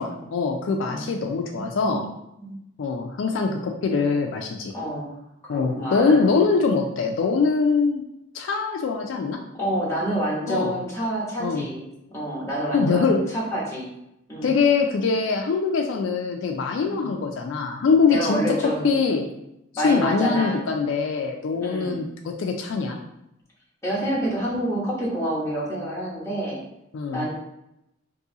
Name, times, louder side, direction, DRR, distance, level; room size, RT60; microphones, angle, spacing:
voice 1, 0.0-2.0 2.8-4.7 5.5-8.0 8.3-9.4 10.5-10.7 11.4-11.6 12.7-13.2 14.4-18.4 18.8-19.3 19.7-23.0 26.9-27.2, left 4 dB, 70° left, 2 dB, 0.3 m, -23 dB
voice 2, 0.8-2.1 2.4-2.6 4.7-5.1 5.5-6.2 9.6-13.9 14.3-14.6 16.8-17.1 18.0-18.9 19.7-20.6 21.6-22.0 23.8-26.6 27.1-27.3, right 1 dB, 15° left, -6 dB, 1.0 m, -28 dB
2.7 x 2.6 x 3.7 m, 0.86 s
head